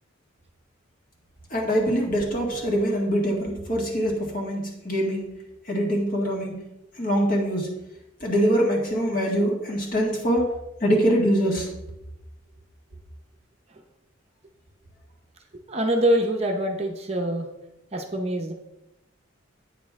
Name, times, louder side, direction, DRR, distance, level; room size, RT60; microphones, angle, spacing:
voice 1, 1.5-5.3 5.7-6.7 7.0-7.7 8.2-10.5 10.8-11.7, equal, 45° left, -1 dB, 1.9 m, -24 dB
voice 2, 15.7-17.5 17.9-18.5, right 1 dB, 30° right, 3 dB, 0.7 m, -24 dB
8.9 x 6.7 x 3.6 m, 0.92 s
head